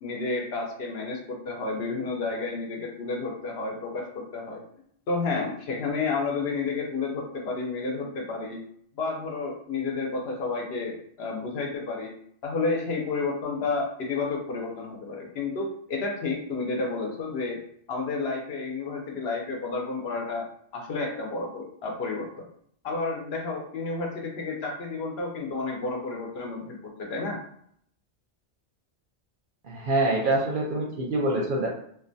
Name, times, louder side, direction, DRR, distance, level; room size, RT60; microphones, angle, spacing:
voice 1, 0.0-4.0 4.3-4.6 5.1-8.6 9.0-12.1 12.4-17.6 17.9-20.5 20.7-22.4 22.8-27.4, left 3 dB, 70° left, 0 dB, 0.8 m, -31 dB
voice 2, 29.6-31.7, right 2 dB, 60° right, -1 dB, 0.6 m, -25 dB
2.5 x 2.2 x 2.5 m, 0.66 s
omnidirectional pair, 1.1 m